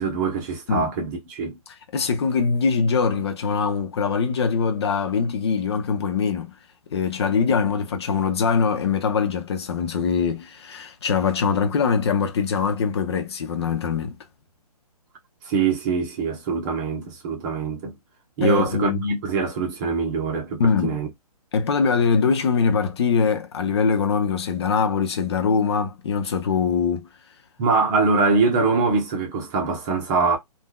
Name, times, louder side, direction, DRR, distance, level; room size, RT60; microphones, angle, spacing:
voice 1, 0.0-1.6 15.4-17.9 18.4-21.1 27.6-30.4, right 4 dB, 30° right, 1.1 m, -23 dB
voice 2, 1.9-6.5 6.9-14.2 18.4-19.0 20.6-21.0 21.5-27.1, left 5 dB, 45° left, 0.6 m, -22 dB
3.4 x 2.5 x 2.3 m
figure-of-eight pair, 135°, 20 cm